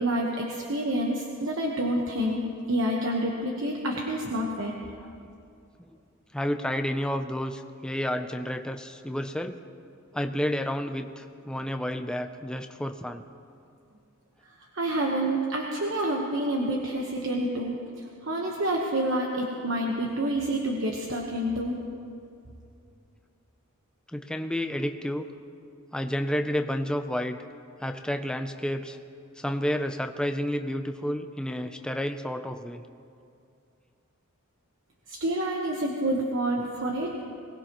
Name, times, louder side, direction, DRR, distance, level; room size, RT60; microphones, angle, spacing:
voice 1, 0.0-2.4 2.7-4.7 14.7-17.8 18.2-21.8 35.1-37.2, right 1 dB, 60° right, 0 dB, 1.1 m, -28 dB
voice 2, 6.3-9.6 10.1-13.2 24.1-25.3 25.9-27.4 27.8-29.0 29.4-32.8, equal, 5° left, 7 dB, 0.4 m, -30 dB
21.5 x 18.5 x 3.0 m, 2.5 s
head